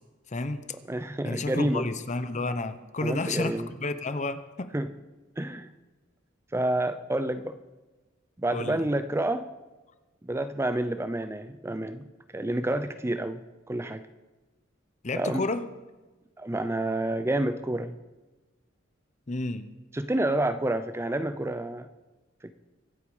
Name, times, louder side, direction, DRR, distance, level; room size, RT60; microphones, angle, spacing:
voice 1, 0.3-0.6 1.2-4.7 8.5-8.8 15.0-15.6 19.3-19.7, left 2 dB, 40° left, 11 dB, 0.8 m, -31 dB
voice 2, 0.9-1.8 3.0-3.7 4.7-4.9 5.4-5.7 6.5-7.6 8.4-9.5 10.2-12.0 12.3-14.1 15.1-15.5 16.4-18.0 19.9-21.9 22.4-22.5, right 1 dB, 15° right, 11 dB, 0.5 m, -29 dB
24.0 x 8.7 x 4.9 m, 1.2 s
head